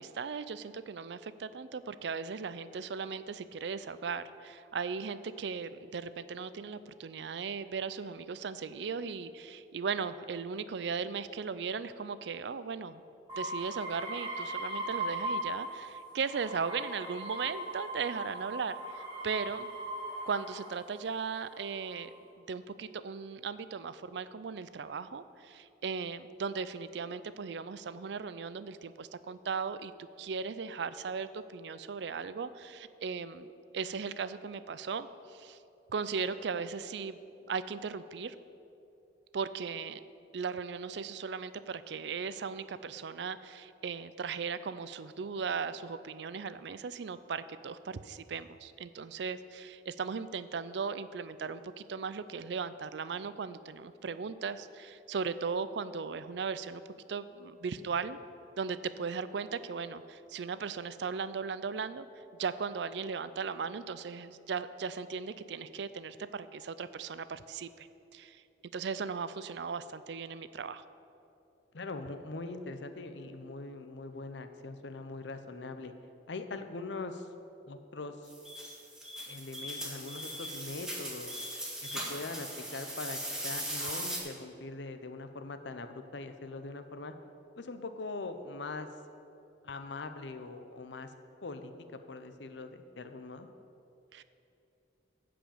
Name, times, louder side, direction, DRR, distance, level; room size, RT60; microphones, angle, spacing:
voice 1, 0.0-13.0 13.4-19.7 20.3-22.1 22.5-29.9 30.2-33.5 33.7-35.6 35.9-37.2 37.5-38.4 39.3-40.0 40.3-56.8 57.1-58.2 58.6-62.1 62.4-67.9 68.1-68.4 68.7-70.8 94.1-94.2, right 5 dB, 65° right, 14 dB, 0.4 m, -37 dB
sound 1, 13.3-15.8 16.2-20.7 21.5-22.1, right 1 dB, 30° right, 2.4 m, -39 dB
voice 2, 71.7-75.9 76.3-77.3 77.7-78.3 79.3-81.3 81.8-87.1 87.6-88.9 89.6-91.1 91.4-93.5, left 3 dB, 70° left, 8 dB, 0.7 m, -42 dB
sound 2, 78.3-84.2, right 1 dB, 5° right, 1.8 m, -39 dB
14.5 x 5.1 x 7.1 m, 2.8 s
head